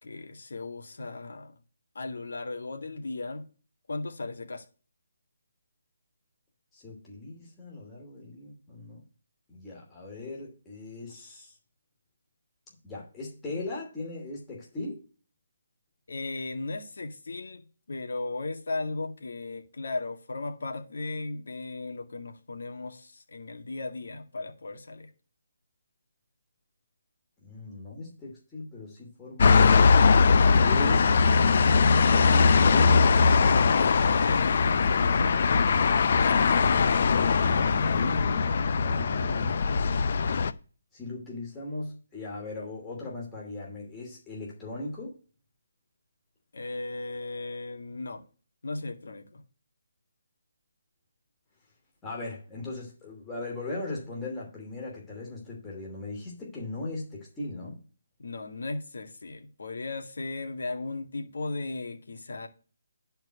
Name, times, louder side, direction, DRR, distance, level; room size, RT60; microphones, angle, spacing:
voice 1, 0.0-1.5 1.9-3.4 3.9-4.6 16.1-25.1 34.2-35.3 36.1-36.4 46.5-48.2 48.6-49.4 58.2-62.5, left 3 dB, 70° left, 2.1 m, -36 dB
voice 2, 6.7-9.0 9.5-11.5 12.8-15.0 27.4-29.7 30.6-31.1 31.9-33.2 37.9-38.4 38.8-39.6 40.9-45.2 52.0-57.8, left 2 dB, 10° left, 2.8 m, -38 dB
sound 1, 29.4-40.5, left 5 dB, 50° left, 0.6 m, -21 dB
10.5 x 4.6 x 6.5 m
hypercardioid pair, 160°, 0 cm